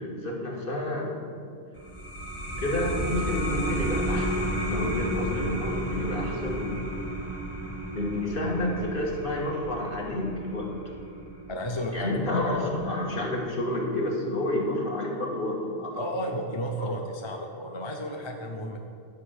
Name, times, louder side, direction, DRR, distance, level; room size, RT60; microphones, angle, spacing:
voice 1, 0.0-1.5 2.6-7.1 7.9-10.7 11.9-16.0, left 1 dB, 50° left, -2 dB, 1.7 m, -30 dB
sound 1, 1.7-12.9, right 1 dB, 15° left, 1.1 m, -32 dB
voice 2, 11.5-12.1 16.0-18.8, equal, 30° left, 3 dB, 0.6 m, -32 dB
11.5 x 5.0 x 6.4 m, 2.2 s
omnidirectional pair, 1.2 m